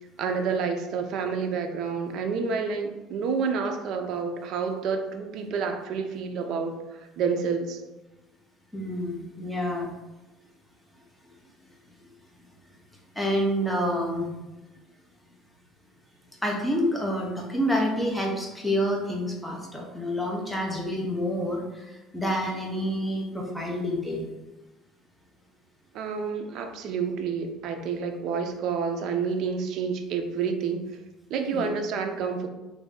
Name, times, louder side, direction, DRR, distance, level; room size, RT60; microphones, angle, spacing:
voice 1, 0.2-7.8 25.9-30.9 31.3-32.5, right 5 dB, 55° right, 5 dB, 0.4 m, -29 dB
voice 2, 8.7-9.9 13.2-14.3 16.4-24.2 31.5-31.7, equal, 5° left, -1 dB, 0.6 m, -28 dB
3.0 x 2.6 x 3.7 m, 1.1 s
cardioid pair, 150°, 0 cm